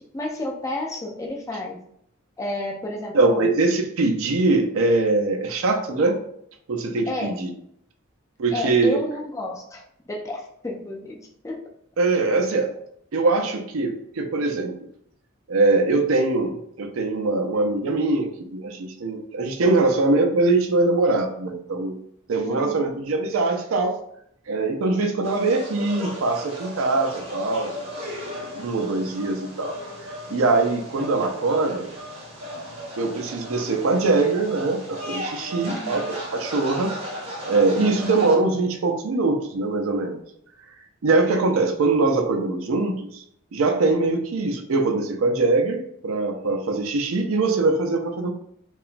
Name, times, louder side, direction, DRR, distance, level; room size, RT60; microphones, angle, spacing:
voice 1, 0.1-1.8 2.4-3.7 7.1-7.4 8.5-11.2 11.4-11.6 22.4-22.8 35.7-36.1, left 1 dB, 15° left, -1 dB, 0.3 m, -31 dB
voice 2, 3.1-6.2 6.7-7.5 8.4-9.0 12.0-12.7 13.1-14.7 15.5-22.0 22.3-24.0 24.5-27.7 28.5-29.7 30.3-31.9 33.0-37.0 37.5-40.2 41.0-43.2 43.5-48.3, right 3 dB, 75° right, 4 dB, 0.4 m, -22 dB
sound 1, 25.2-38.4, equal, 30° right, 0.7 m, -35 dB
2.9 x 2.3 x 2.4 m, 0.69 s
head